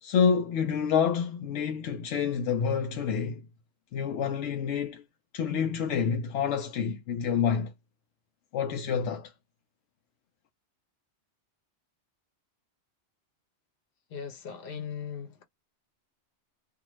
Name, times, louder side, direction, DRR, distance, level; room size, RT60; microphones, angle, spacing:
voice 1, 0.0-3.4 3.9-5.0 5.3-7.7 8.5-9.3, left 7 dB, 85° left, 0.9 m, -28 dB
voice 2, 14.1-15.4, left 7 dB, 55° left, 1.0 m, -38 dB
2.5 x 2.3 x 3.0 m
omnidirectional pair, 1.2 m